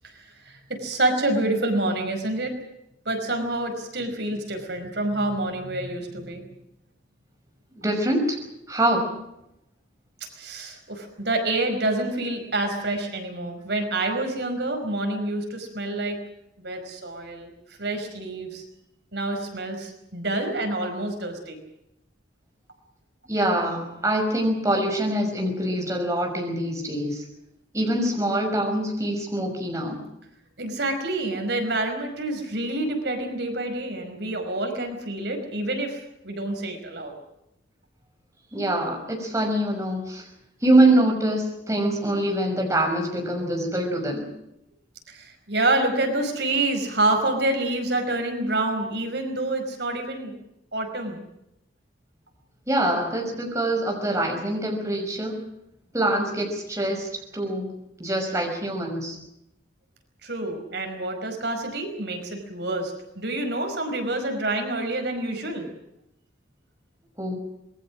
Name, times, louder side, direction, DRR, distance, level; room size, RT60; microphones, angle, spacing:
voice 1, 0.0-2.5 3.1-6.4 10.4-16.2 16.6-17.5 17.8-18.6 19.1-21.6 30.6-37.1 45.1-50.3 50.7-51.2 60.2-65.7, right 2 dB, 60° right, 4 dB, 5.2 m, -27 dB
voice 2, 7.8-8.4 8.7-9.1 23.3-27.2 27.7-30.0 38.5-40.2 40.6-44.3 52.7-55.4 55.9-57.1 57.3-57.7 58.0-59.2 67.2-67.4, right 1 dB, 15° right, 1 dB, 5.9 m, -24 dB
26.5 x 21.5 x 6.3 m, 0.84 s
head